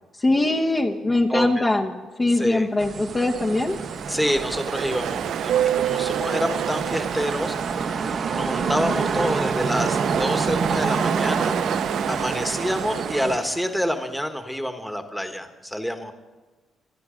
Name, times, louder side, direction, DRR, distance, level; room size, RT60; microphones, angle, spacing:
voice 1, 0.2-3.8, left 2 dB, 25° left, 0 dB, 1.1 m, -22 dB
voice 2, 1.3-1.6 2.3-2.7 4.1-7.9 8.3-11.6 12.1-16.1, equal, ahead, 6 dB, 1.4 m, -27 dB
sound 1, 2.8-13.4, right 4 dB, 45° right, 1.1 m, -28 dB
Ocean, 2.9-14.0, right 10 dB, 75° right, 0.4 m, -29 dB
27.0 x 9.5 x 5.1 m, 1.3 s
cardioid pair, 90°, 0 cm